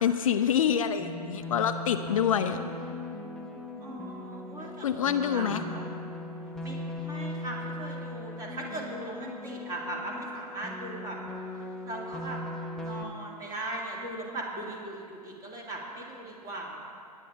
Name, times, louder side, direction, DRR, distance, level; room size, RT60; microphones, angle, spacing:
voice 1, 0.0-2.6 4.8-5.6, left 8 dB, 55° left, 8 dB, 0.6 m, -26 dB
sound 1, 1.0-13.0, left 1 dB, ahead, 1.0 m, -39 dB
voice 2, 3.8-5.9 6.6-11.2 11.8-12.4 12.8-16.9, right 2 dB, 15° right, -2 dB, 2.2 m, -39 dB
18.0 x 10.0 x 3.4 m, 2.4 s
figure-of-eight pair, 115°, 21 cm